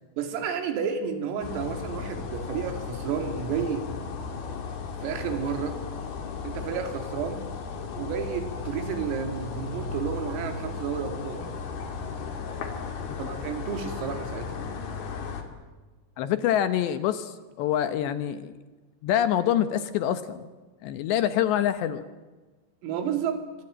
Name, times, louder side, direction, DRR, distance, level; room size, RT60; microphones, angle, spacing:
voice 1, 0.2-3.9 5.0-5.8 6.4-7.4 8.0-11.5 13.2-14.7 22.8-23.5, right 7 dB, 85° right, 7 dB, 5.3 m, -31 dB
sound 1, 1.4-15.4, left 5 dB, 55° left, 4.2 m, -35 dB
voice 2, 16.2-18.5 19.0-20.4 20.8-22.1, left 10 dB, 75° left, 11 dB, 2.9 m, -26 dB
25.0 x 24.0 x 8.9 m, 1.3 s
omnidirectional pair, 5.9 m